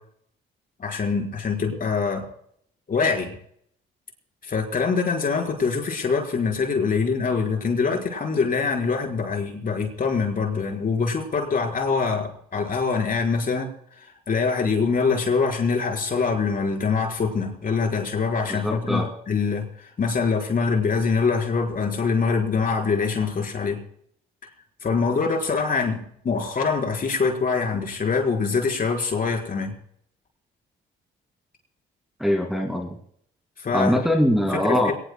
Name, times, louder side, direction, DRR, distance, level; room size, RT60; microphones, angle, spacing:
voice 1, 0.8-2.3 2.9-3.3 4.4-13.7 14.0-23.8 24.8-26.0 26.2-29.7 33.6-34.0 34.6-34.9, left 5 dB, 45° left, 2 dB, 4.5 m, -24 dB
voice 2, 18.5-19.1 32.2-32.9 33.7-34.9, left 1 dB, ahead, 1 dB, 2.3 m, -22 dB
22.5 x 19.5 x 2.3 m, 0.68 s
cardioid pair, 90°, 20 cm